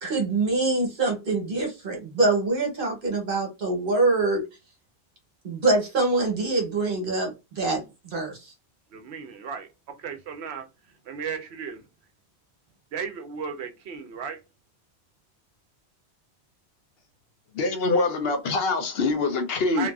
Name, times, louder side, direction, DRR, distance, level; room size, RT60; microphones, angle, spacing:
voice 1, 0.0-4.4 5.4-8.5, right 3 dB, 55° right, 1.1 m, -25 dB
voice 2, 8.9-10.7 11.1-11.8 12.9-14.4 19.7-19.9, right 6 dB, 70° right, 0.8 m, -35 dB
voice 3, 17.5-19.9, left 3 dB, 65° left, 0.8 m, -24 dB
2.9 x 2.4 x 2.3 m
omnidirectional pair, 1.2 m